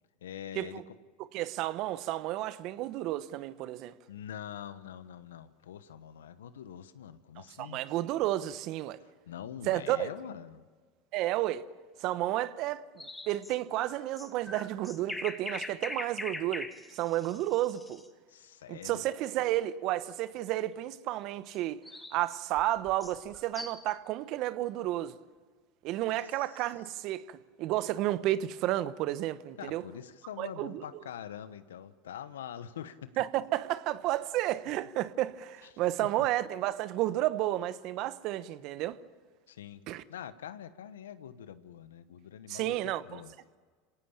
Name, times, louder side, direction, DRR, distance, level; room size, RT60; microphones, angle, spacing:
voice 1, 0.2-0.8 4.1-7.8 9.0-10.7 18.3-19.0 26.2-26.7 29.6-33.1 35.7-36.3 39.5-43.3, left 9 dB, 85° left, 1.1 m, -45 dB
voice 2, 1.3-3.9 7.4-9.0 9.7-10.1 11.1-11.6 12.0-18.0 18.7-21.8 22.1-25.2 25.8-29.8 30.4-30.8 33.2-39.0 39.9-40.0 42.5-43.2, right 14 dB, 55° right, 1.0 m, -32 dB
sound 1, 13.0-18.1 21.5-23.9, left 2 dB, 10° left, 2.3 m, -42 dB
26.0 x 18.0 x 8.8 m
hypercardioid pair, 95°, 0 cm